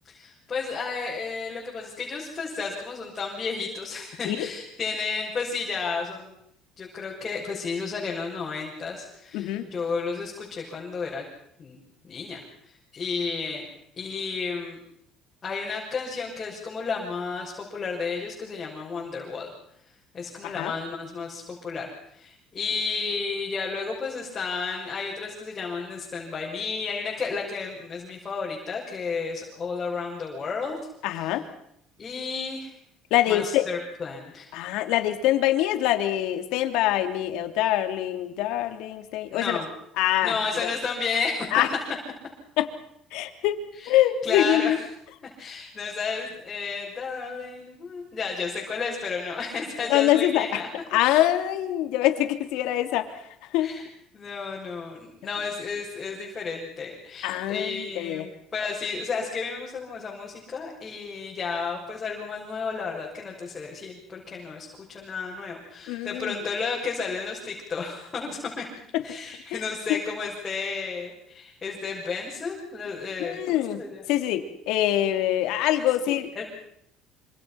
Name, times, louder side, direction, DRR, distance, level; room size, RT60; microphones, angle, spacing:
voice 1, 0.0-6.3 6.8-11.2 11.6-11.8 12.0-13.7 14.0-14.8 15.4-19.5 20.1-30.8 31.1-31.3 32.0-32.8 33.3-34.5 39.3-39.7 40.2-41.5 43.8-44.0 44.2-44.8 45.4-50.7 53.6-53.9 54.1-68.6 69.0-74.0 75.7-75.9 76.3-76.4, left 4 dB, 25° left, -3 dB, 6.4 m, -32 dB
voice 2, 9.3-9.6 20.4-20.7 31.0-31.4 33.1-33.6 34.5-39.6 40.0-40.3 41.5-41.7 42.6-42.7 43.1-43.6 43.8-44.8 49.9-50.4 50.9-53.1 53.5-53.7 57.2-58.2 65.9-66.3 69.5-69.6 69.9-70.0 73.2-73.8 74.1-76.3, left 13 dB, 80° left, 6 dB, 3.1 m, -24 dB
27.0 x 26.0 x 6.0 m, 0.73 s
cardioid pair, 145°, 0 cm